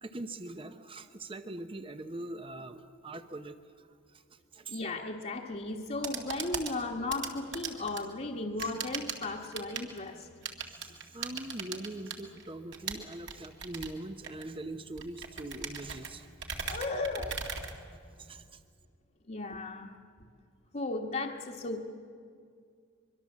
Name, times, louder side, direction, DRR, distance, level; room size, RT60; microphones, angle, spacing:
voice 1, 0.0-4.8 5.7-5.8 8.6-8.7 10.7-16.3 16.6-16.8 17.7-17.8 18.2-18.6, right 2 dB, 25° right, 9 dB, 0.8 m, -43 dB
voice 2, 4.7-10.3 16.6-17.4 19.3-19.9 20.7-21.9, left 2 dB, 35° left, -2 dB, 1.3 m, -35 dB
sound 1, 5.8-18.4, right 6 dB, 55° right, 2.2 m, -40 dB
23.5 x 23.5 x 7.4 m, 2.3 s
head